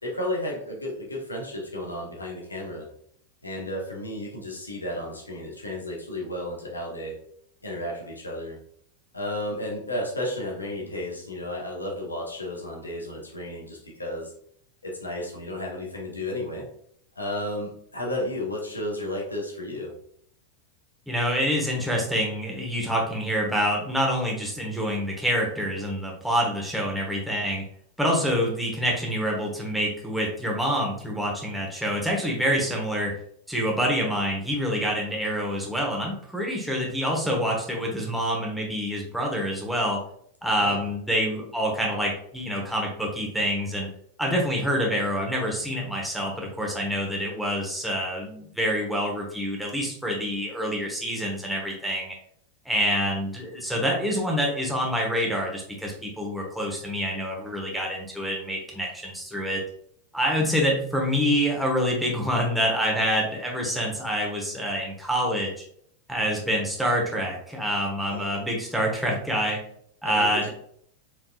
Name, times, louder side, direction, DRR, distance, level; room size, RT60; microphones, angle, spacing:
voice 1, 0.0-2.9 3.4-7.2 7.6-8.6 9.1-14.3 14.8-16.7 17.2-19.9 40.6-40.9 68.0-68.5 70.0-70.5, left 1 dB, 80° left, -1 dB, 1.0 m, -33 dB
voice 2, 21.1-27.6 28.0-33.1 33.5-40.0 40.4-43.9 44.2-52.1 52.6-59.6 60.1-65.5 66.1-69.6 70.0-70.5, equal, ahead, -2 dB, 1.1 m, -26 dB
4.5 x 3.5 x 2.4 m, 0.64 s
figure-of-eight pair, 90°, 0 cm